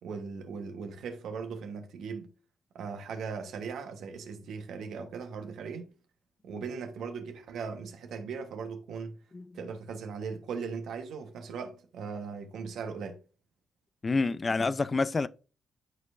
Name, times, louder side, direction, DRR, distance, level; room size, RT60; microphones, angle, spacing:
voice 1, 0.0-2.3 2.7-5.9 6.4-9.2 9.5-13.2, right 5 dB, 70° right, 1.1 m, -38 dB
voice 2, 14.0-15.3, left 3 dB, 35° left, 0.4 m, -27 dB
11.5 x 4.6 x 2.5 m
hypercardioid pair, 50°, 0 cm